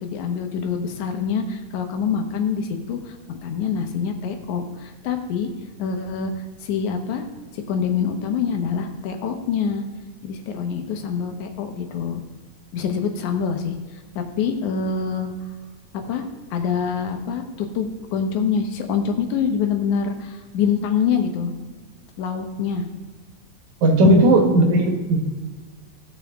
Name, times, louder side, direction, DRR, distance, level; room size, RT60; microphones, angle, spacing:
voice 1, 0.0-5.5 5.8-6.3 6.6-7.2 7.5-9.8 10.2-12.2 12.7-13.8 14.2-15.3 16.1-16.2 16.5-21.5 22.2-22.8 24.2-24.8, left 6 dB, 90° left, 5 dB, 2.5 m, -25 dB
voice 2, 23.8-25.2, right 1 dB, 80° right, 4 dB, 2.6 m, -16 dB
16.0 x 5.8 x 3.6 m, 1.3 s
omnidirectional pair, 3.3 m